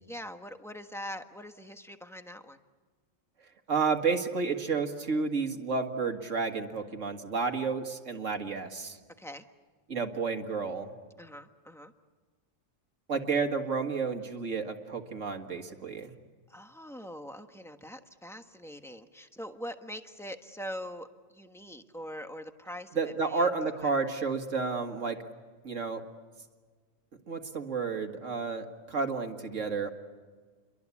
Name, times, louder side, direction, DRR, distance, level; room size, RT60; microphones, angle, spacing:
voice 1, 0.0-2.6 9.2-9.4 11.2-11.9 16.5-23.5 23.8-23.9, equal, ahead, 6 dB, 1.3 m, -43 dB
voice 2, 3.7-9.0 9.9-10.9 13.1-16.1 23.0-25.2 25.6-26.0 27.3-29.9, right 4 dB, 80° right, 5 dB, 2.2 m, -31 dB
29.5 x 23.5 x 8.4 m, 1.5 s
omnidirectional pair, 1.3 m